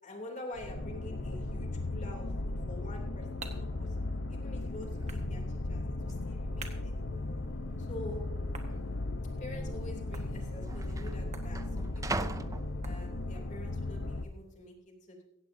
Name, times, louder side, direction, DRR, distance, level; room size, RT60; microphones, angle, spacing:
voice 1, 0.0-6.9 7.8-8.2 9.4-12.4 12.8-15.2, left 1 dB, 40° left, 1 dB, 3.1 m, -47 dB
sound 1, 0.6-14.2, left 2 dB, 65° left, 0.9 m, -36 dB
sound 2, 2.7-13.6, right 4 dB, 35° right, 1.6 m, -54 dB
sound 3, 4.6-4.7 5.0-5.4 6.1-6.2 6.9-7.5 7.7-7.9 8.7-8.9 9.9-10.0 10.2-13.4 13.9-14.3, right 3 dB, 15° right, 0.5 m, -41 dB
16.0 x 15.5 x 2.8 m, 0.87 s
head